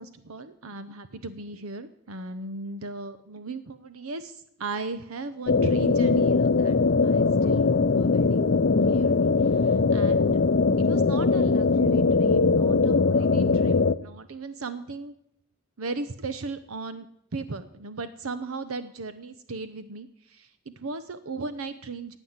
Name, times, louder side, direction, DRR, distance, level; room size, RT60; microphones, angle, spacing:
voice 1, 0.0-6.7 7.0-8.4 8.9-10.4 10.8-15.1 15.8-22.2, right 3 dB, 90° right, 11 dB, 0.9 m, -37 dB
sound 1, 5.5-13.9, left 4 dB, 50° left, 0.6 m, -21 dB
15.5 x 9.1 x 8.1 m, 0.74 s
head